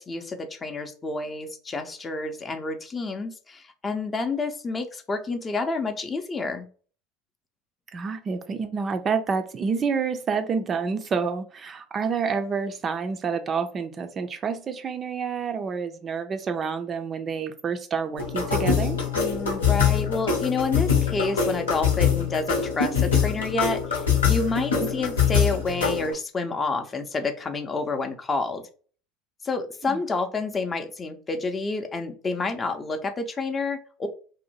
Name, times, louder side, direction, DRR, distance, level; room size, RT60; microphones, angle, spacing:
voice 1, 0.0-6.7 19.1-28.6 29.4-34.1, left 3 dB, 25° left, 0.5 m, -29 dB
voice 2, 7.9-19.0 24.8-24.9 29.8-30.0, right 5 dB, 35° right, 0.4 m, -28 dB
sound 1, 18.2-26.1, left 7 dB, 85° left, 0.8 m, -24 dB
2.7 x 2.0 x 2.8 m
figure-of-eight pair, 70°, 0 cm